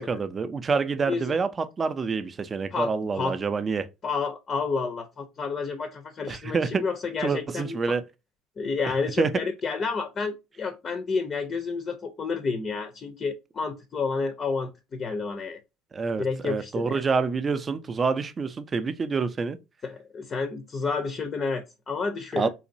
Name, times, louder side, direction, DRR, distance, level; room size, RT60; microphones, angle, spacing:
voice 1, 0.0-3.9 6.3-6.8 7.2-8.0 9.2-9.3 15.9-19.6 22.4-22.5, right 4 dB, 25° right, 0.5 m, -27 dB
voice 2, 2.7-3.4 4.0-7.8 8.6-15.6 16.2-17.0 19.8-22.5, left 4 dB, 30° left, 0.6 m, -30 dB
3.9 x 2.9 x 2.6 m
cardioid pair, 125°, 0 cm